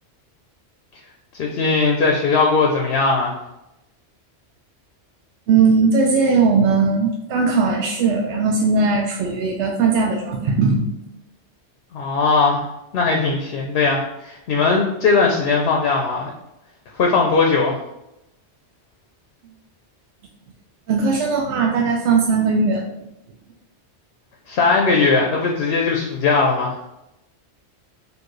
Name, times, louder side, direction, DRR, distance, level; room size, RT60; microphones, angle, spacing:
voice 1, 1.4-3.3 11.9-12.6 12.9-16.3 16.9-17.8 24.5-26.8, left 4 dB, 65° left, 1 dB, 0.8 m, -19 dB
voice 2, 5.5-10.9 20.9-22.8, right 4 dB, 80° right, 1 dB, 0.9 m, -18 dB
4.5 x 2.7 x 3.0 m, 0.89 s
omnidirectional pair, 1.2 m